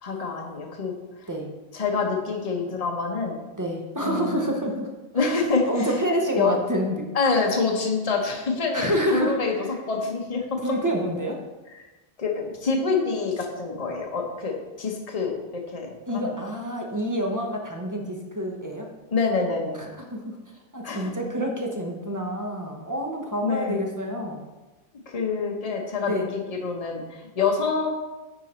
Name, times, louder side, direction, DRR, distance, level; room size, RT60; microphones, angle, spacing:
voice 1, 0.0-0.9 1.2-1.3 1.7-3.4 4.0-4.5 5.1-6.0 6.3-6.6 7.1-9.5 9.9-10.6 11.7-11.8 12.2-15.4 15.7-16.3 19.1-19.8 20.8-21.1 23.4-23.8 25.1-27.9, left 4 dB, 30° left, 1 dB, 1.0 m, -26 dB
voice 2, 3.6-4.9 5.2-5.3 5.7-6.9 8.7-9.4 10.6-11.4 16.1-18.9 19.8-20.3 20.7-24.4 26.0-26.3, equal, 15° right, 1 dB, 0.7 m, -27 dB
9.0 x 4.0 x 4.4 m, 1.1 s
omnidirectional pair, 1.5 m